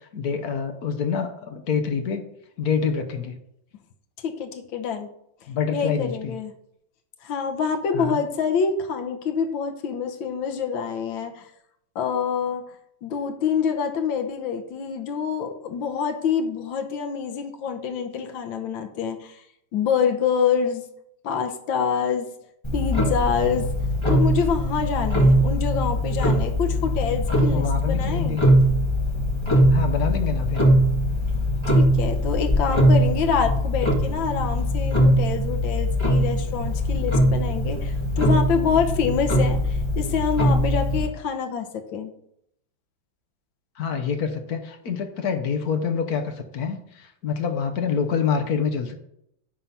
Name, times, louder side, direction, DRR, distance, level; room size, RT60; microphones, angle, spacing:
voice 1, 0.0-2.2 2.6-3.4 5.5-6.3 7.9-8.2 27.5-28.4 29.7-30.6 43.8-49.0, left 6 dB, 55° left, 7 dB, 1.2 m, -26 dB
voice 2, 4.2-5.1 5.7-6.5 7.2-11.5 11.9-12.6 13.0-19.4 19.7-20.8 21.2-22.3 22.7-23.7 24.1-28.4 31.7-42.1, left 6 dB, 75° left, 5 dB, 1.7 m, -26 dB
Clock, 22.6-41.1, equal, 15° left, 1.6 m, -21 dB
10.0 x 3.8 x 5.6 m, 0.74 s
omnidirectional pair, 2.2 m